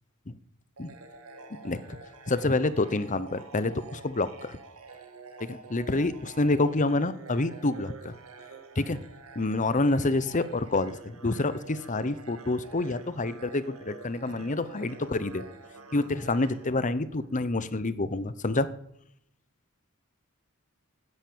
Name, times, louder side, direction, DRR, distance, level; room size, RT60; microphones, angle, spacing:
sound 1, 0.8-17.5, right 4 dB, 80° right, 2.1 m, -48 dB
voice 1, 1.6-2.0 2.3-4.6 5.5-8.2 8.8-9.0 9.4-15.4 15.9-18.7, left 2 dB, 35° left, 14 dB, 0.9 m, -28 dB
16.5 x 9.8 x 8.7 m, 0.74 s
head